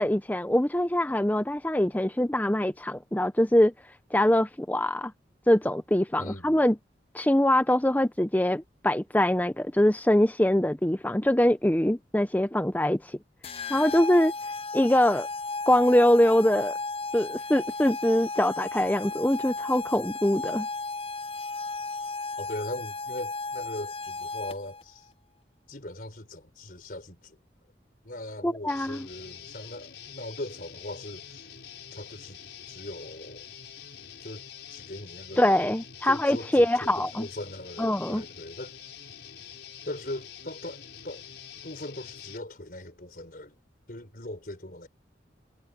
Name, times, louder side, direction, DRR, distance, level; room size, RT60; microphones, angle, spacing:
voice 1, 0.0-3.7 4.1-5.1 5.5-6.8 7.1-13.2 13.7-14.3 14.7-15.3 15.7-16.7 17.1-20.7 28.4-29.0 35.4-37.3 37.8-38.2, left 1 dB, 10° left, 0.7 m, -23 dB
voice 2, 6.2-6.6 22.4-25.1 25.7-27.4 28.0-31.5 31.9-32.4 32.7-33.5 34.2-34.4 34.7-35.7 36.0-38.8 39.9-41.2 41.6-43.6 43.9-44.9, left 1 dB, 50° left, 4.8 m, -40 dB
sound 1, 13.4-24.8, left 3 dB, 35° left, 0.9 m, -35 dB
Guitar, 28.7-42.4, left 8 dB, 80° left, 4.6 m, -46 dB
head